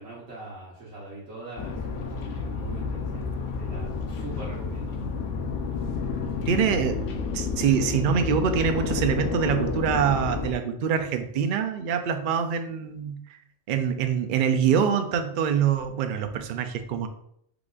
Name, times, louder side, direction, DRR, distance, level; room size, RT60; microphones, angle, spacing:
voice 1, 0.0-5.2, right 2 dB, 85° right, -8 dB, 1.6 m, -42 dB
sound 1, 1.6-10.5, left 4 dB, 75° left, 0.9 m, -30 dB
voice 2, 6.5-13.2 13.7-17.1, right 7 dB, 65° right, 7 dB, 0.5 m, -25 dB
4.8 x 2.4 x 3.8 m, 0.70 s
omnidirectional pair, 1.3 m